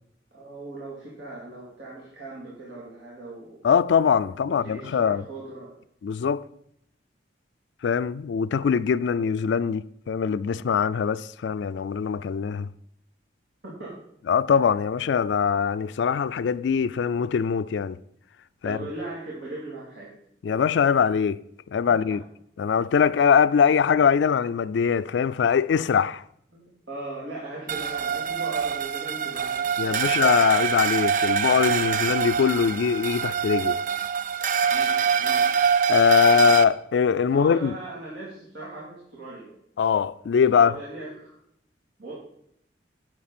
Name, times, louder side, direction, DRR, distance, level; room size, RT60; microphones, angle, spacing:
voice 1, 0.3-3.6 4.5-5.8 13.6-14.0 18.6-20.1 22.1-22.2 26.5-30.2 34.6-35.6 36.2-36.5 37.3-39.5 40.6-41.4 42.0-42.1, right 2 dB, 85° right, 3.2 m, -39 dB
voice 2, 3.6-5.2 6.0-6.4 7.8-12.7 14.3-18.0 18.6-18.8 20.4-21.4 21.7-22.2 22.6-26.2 29.8-33.8 35.9-37.7 39.8-40.7, left 6 dB, 80° left, 0.3 m, -22 dB
sound 1, 27.7-36.6, right 7 dB, 45° right, 0.4 m, -24 dB
11.0 x 7.7 x 4.3 m
head